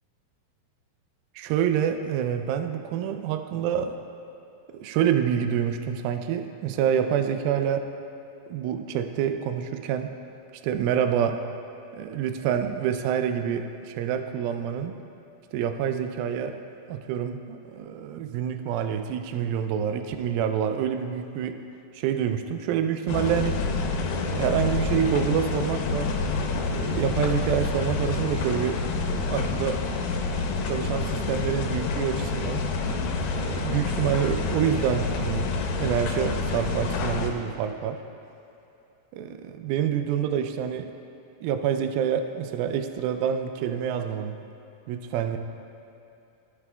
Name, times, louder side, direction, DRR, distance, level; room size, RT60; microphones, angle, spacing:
voice 1, 1.4-4.0 4.7-7.9 8.5-10.1 10.6-11.4 11.9-15.0 15.5-16.6 16.9-21.6 21.9-23.6 24.1-26.1 26.7-28.8 29.1-29.8 30.7-32.7 33.4-38.0 39.1-40.9 41.4-44.4 44.9-45.4, right 9 dB, 85° right, 8 dB, 2.3 m, -27 dB
sound 1, 23.1-37.3, left 4 dB, 90° left, 2.5 m, -28 dB
16.0 x 8.5 x 2.3 m, 2.8 s
omnidirectional pair, 4.3 m